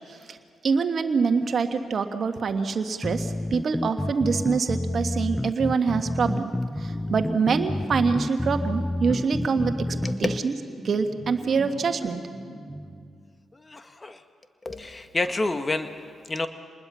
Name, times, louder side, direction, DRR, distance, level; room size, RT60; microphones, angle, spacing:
voice 1, 0.6-6.5 6.8-9.9 10.2-10.5 10.8-12.2, right 5 dB, 55° right, 7 dB, 1.7 m, -25 dB
sound 1, 3.0-10.4, left 1 dB, 15° left, 0.5 m, -29 dB
sound 2, 6.7-13.4, right 1 dB, 20° right, 5.7 m, -40 dB
voice 2, 13.5-14.2 14.6-16.5, left 2 dB, 30° left, 8 dB, 1.8 m, -29 dB
27.0 x 20.5 x 5.7 m, 2.2 s
hypercardioid pair, 40°, 0 cm